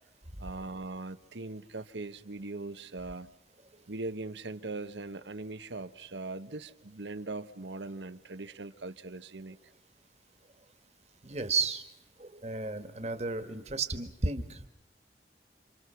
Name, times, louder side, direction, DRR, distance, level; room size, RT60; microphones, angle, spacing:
voice 1, 0.4-3.3 3.9-9.6, right 2 dB, 85° right, 1.0 m, -40 dB
voice 2, 11.2-11.8 12.2-14.7, right 4 dB, 35° right, 1.6 m, -33 dB
29.0 x 27.0 x 5.8 m
head